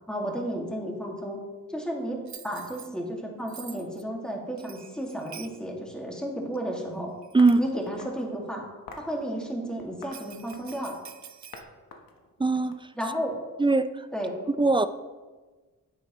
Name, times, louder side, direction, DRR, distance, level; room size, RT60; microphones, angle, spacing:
voice 1, 0.1-1.4 1.7-7.1 7.6-8.6 9.0-11.0 13.0-13.4 14.1-14.3, right 1 dB, ahead, 2.0 m, -33 dB
Bell, 2.3-2.9 3.5-4.0 4.6-5.6 6.5-6.6 7.2-7.7 10.1-11.6, right 8 dB, 55° right, 0.6 m, -47 dB
sound 1, 7.4-8.3 8.9-9.1 9.8-10.9 11.5-11.6 11.9-13.3, left 4 dB, 85° left, 1.1 m, -46 dB
voice 2, 12.4-12.8 13.6-14.1 14.5-14.9, right 3 dB, 15° right, 0.4 m, -21 dB
10.0 x 8.7 x 3.1 m
cardioid pair, 75°, 34 cm